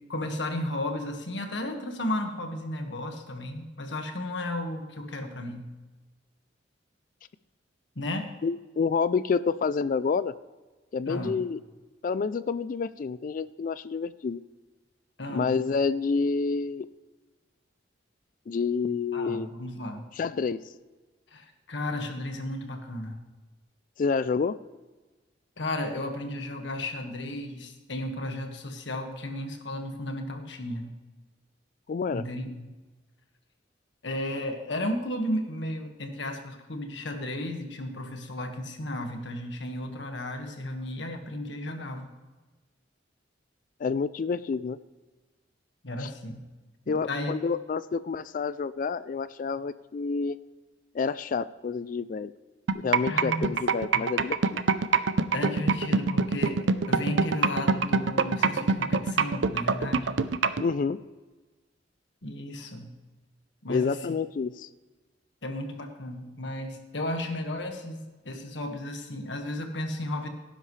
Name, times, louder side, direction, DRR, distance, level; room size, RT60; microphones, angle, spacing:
voice 1, 0.1-5.7 8.0-8.3 11.1-11.4 15.2-15.6 19.1-20.0 21.3-23.2 25.6-31.0 32.1-32.7 34.0-42.1 45.8-46.4 46.9-47.3 53.0-53.6 53.9-54.1 55.3-60.2 62.2-62.9 63.6-64.1 65.4-70.3, left 1 dB, 75° left, 4 dB, 1.7 m, -34 dB
voice 2, 8.4-10.3 10.9-11.6 12.0-14.4 15.3-16.9 18.5-19.5 20.2-20.6 24.0-24.6 31.9-32.2 43.8-44.8 46.0-46.1 46.9-50.4 50.9-52.3 52.7-54.6 60.6-61.0 63.7-64.7, left 5 dB, 45° left, 15 dB, 0.3 m, -28 dB
sound 1, 52.7-60.6, right 4 dB, 75° right, 0.6 m, -23 dB
18.0 x 10.0 x 3.3 m, 1.2 s
head